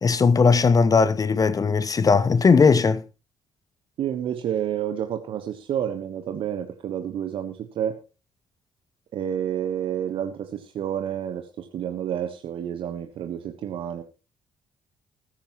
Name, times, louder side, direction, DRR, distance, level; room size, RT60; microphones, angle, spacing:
voice 1, 0.0-3.0, left 5 dB, 35° left, 1.0 m, -18 dB
voice 2, 4.0-8.0 9.1-14.0, right 9 dB, 60° right, 1.3 m, -29 dB
20.0 x 10.5 x 3.1 m
hypercardioid pair, 45°, 10 cm